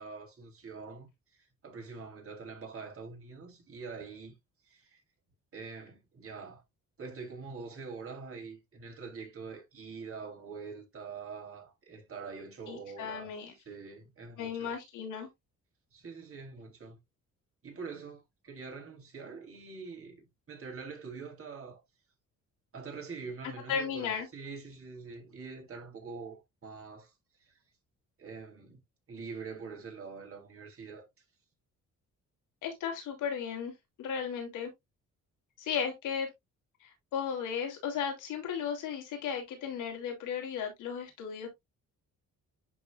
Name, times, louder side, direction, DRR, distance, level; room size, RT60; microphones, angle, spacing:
voice 1, 0.0-4.4 4.7-5.0 5.5-6.6 7.0-13.3 13.7-14.7 15.9-17.0 17.6-21.8 22.7-27.1 27.4-27.6 28.2-28.8 29.1-31.1, right 4 dB, 45° right, 3.8 m, -45 dB
voice 2, 12.7-13.5 14.4-15.3 23.7-24.3 32.6-33.7 34.0-34.7 35.6-36.3 36.8-41.5, left 7 dB, 85° left, 3.4 m, -35 dB
11.0 x 4.1 x 2.5 m
cardioid pair, 90°, 30 cm